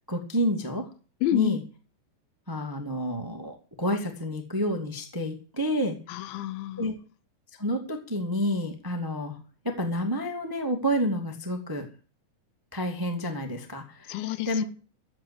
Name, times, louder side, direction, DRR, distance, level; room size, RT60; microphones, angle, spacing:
voice 1, 0.1-0.8 1.3-1.6 2.5-6.0 6.8-6.9 7.6-9.4 9.6-11.8 12.7-14.6, equal, 10° right, 1.0 m, -29 dB
voice 2, 1.2-1.6 6.1-7.0 14.1-14.6, left 14 dB, 85° left, 3.3 m, -29 dB
13.5 x 8.8 x 8.4 m
omnidirectional pair, 5.1 m